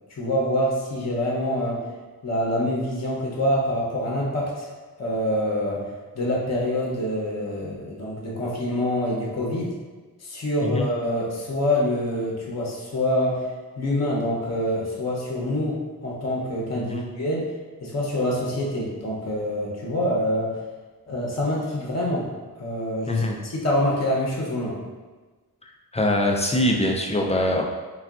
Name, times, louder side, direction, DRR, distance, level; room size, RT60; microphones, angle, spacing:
voice 1, 0.1-1.9 2.2-4.7 5.0-9.8 10.2-17.5 17.8-20.6 21.1-22.3 22.6-24.8, left 1 dB, 45° left, -3 dB, 0.7 m, -26 dB
voice 2, 23.1-23.4 25.9-27.6, left 1 dB, 20° left, 0 dB, 0.3 m, -23 dB
3.5 x 2.3 x 2.3 m, 1.3 s
wide cardioid pair, 75°, 37 cm